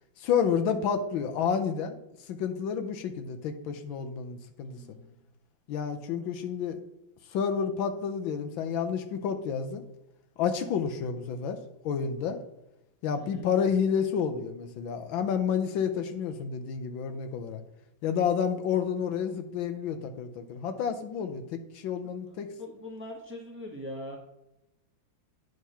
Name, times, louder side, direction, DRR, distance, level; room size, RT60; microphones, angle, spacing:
voice 1, 0.2-2.0 2.3-4.8 5.7-6.8 7.3-9.8 10.4-11.6 11.8-12.4 13.0-17.6 18.0-22.5, left 7 dB, 80° left, 7 dB, 1.5 m, -30 dB
voice 2, 4.6-5.2 13.2-13.5 22.0-24.2, left 1 dB, 5° right, -2 dB, 1.1 m, -43 dB
9.2 x 3.6 x 5.6 m, 0.88 s
omnidirectional pair, 2.2 m